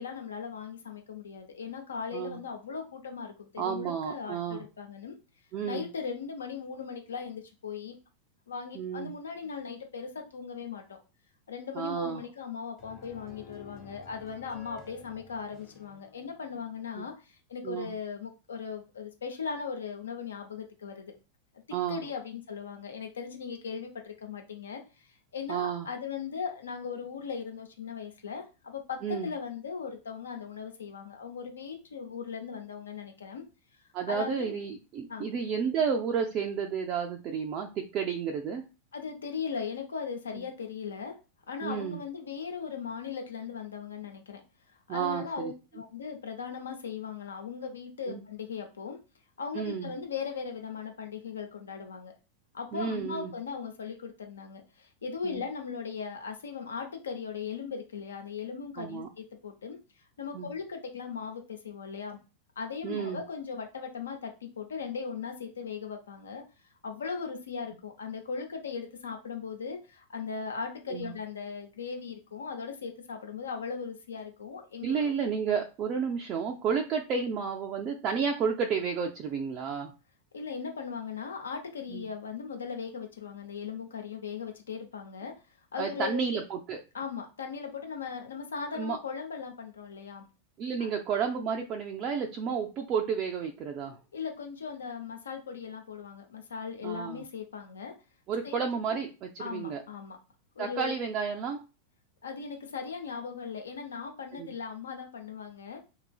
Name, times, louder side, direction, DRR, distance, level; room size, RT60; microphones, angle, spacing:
voice 1, 0.0-5.2 5.6-8.0 8.5-11.0 11.5-21.1 21.9-33.4 34.1-34.6 35.1-35.3 38.9-41.2 41.5-44.4 44.9-49.0 49.4-52.1 52.5-59.8 60.2-62.2 62.6-66.4 66.8-75.1 76.7-76.8 80.3-85.3 85.7-86.3 86.9-90.3 90.8-90.9 94.1-97.9 98.4-98.6 98.9-99.0 99.4-100.2 100.6-100.9 102.2-105.8, left 6 dB, 70° left, 4 dB, 0.6 m, -38 dB
voice 2, 3.6-4.7 5.5-5.9 8.7-9.1 11.7-12.2 17.0-17.1 17.6-17.9 21.7-22.1 25.5-25.9 29.0-29.3 33.9-38.6 40.3-40.4 41.6-42.0 44.9-45.5 48.1-48.2 49.5-49.9 52.7-53.3 55.2-55.4 58.8-59.1 60.3-60.5 62.8-63.2 70.9-71.1 74.8-79.9 81.9-82.1 85.7-86.8 88.7-89.0 90.6-94.0 96.8-97.2 98.3-99.8 100.6-101.6 104.3-104.5, right 6 dB, 35° right, 1 dB, 0.3 m, -31 dB
sound 1, 12.8-16.9, left 5 dB, 20° left, 1.0 m, -52 dB
2.8 x 2.4 x 2.3 m, 0.31 s
figure-of-eight pair, 90°, 0 cm